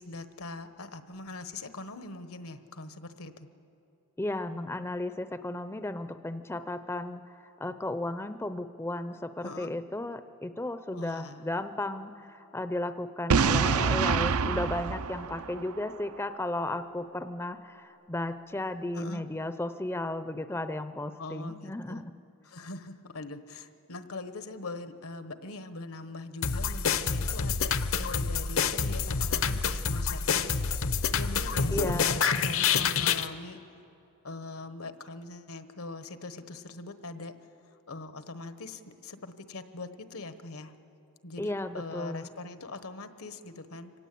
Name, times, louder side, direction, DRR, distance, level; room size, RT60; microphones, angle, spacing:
voice 1, 0.0-3.5 9.4-9.8 10.9-11.4 18.9-19.3 21.2-22.0 22.4-30.6 31.1-33.6 34.2-37.3 37.9-40.7 41.2-43.9, left 2 dB, 80° left, 10 dB, 1.2 m, -42 dB
voice 2, 4.2-22.1 31.7-32.2 41.4-42.3, left 1 dB, 10° left, 10 dB, 0.5 m, -34 dB
Boom, 13.3-16.2, right 5 dB, 85° right, 0.6 m, -26 dB
sound 1, 26.4-33.3, left 6 dB, 65° left, 0.8 m, -27 dB
25.0 x 17.5 x 8.4 m, 2.7 s
head